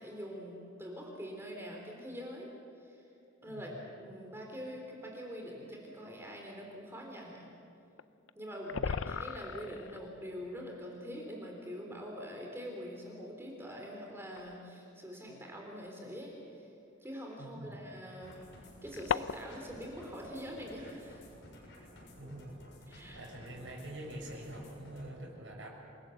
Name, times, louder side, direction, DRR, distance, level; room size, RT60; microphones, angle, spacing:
voice 1, 0.0-2.5 2.8-3.0 3.4-7.5 8.4-16.7 17.0-18.4 18.8-21.2 22.9-23.2, equal, 15° right, -1 dB, 3.5 m, -44 dB
sound 1, 5.4-5.5 8.0-8.1 8.3-8.4 8.6-10.0 11.4-11.5 12.3-12.4 14.4-14.6 15.9-16.0 18.0-19.7, left 6 dB, 90° left, 0.5 m, -36 dB
voice 2, 8.7-9.0 17.4-17.8 21.8-22.5 23.1-25.7, right 1 dB, 75° right, -1 dB, 6.6 m, -46 dB
sound 2, 18.2-25.1, equal, 70° left, 7.1 m, -54 dB
28.5 x 19.0 x 7.9 m, 2.7 s
head